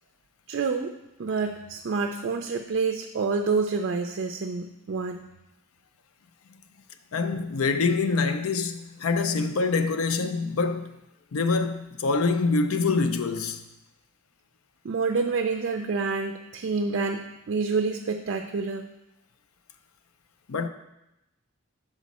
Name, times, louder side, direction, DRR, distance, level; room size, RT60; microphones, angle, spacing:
voice 1, 0.5-0.9 1.2-5.3 14.8-18.9, right 4 dB, 50° right, 0.4 m, -28 dB
voice 2, 7.1-11.0 11.3-13.6 20.5-20.7, left 4 dB, 75° left, 0.5 m, -25 dB
6.2 x 5.1 x 4.1 m
head